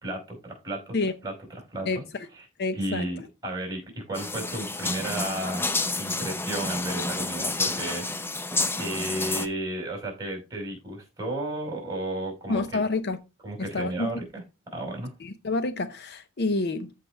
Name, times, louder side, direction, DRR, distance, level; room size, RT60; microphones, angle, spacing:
voice 1, 0.0-1.0 1.2-2.0 2.3-2.5 2.7-5.7 5.9-8.2 8.7-12.8 13.4-15.1, right 1 dB, 20° right, 4.6 m, -33 dB
voice 2, 1.9-2.3 2.6-3.1 12.5-13.2 13.6-14.2 15.2-16.9, left 3 dB, 50° left, 0.7 m, -28 dB
sound 1, 4.1-9.5, left 2 dB, 10° left, 0.5 m, -29 dB
14.0 x 5.1 x 3.3 m
head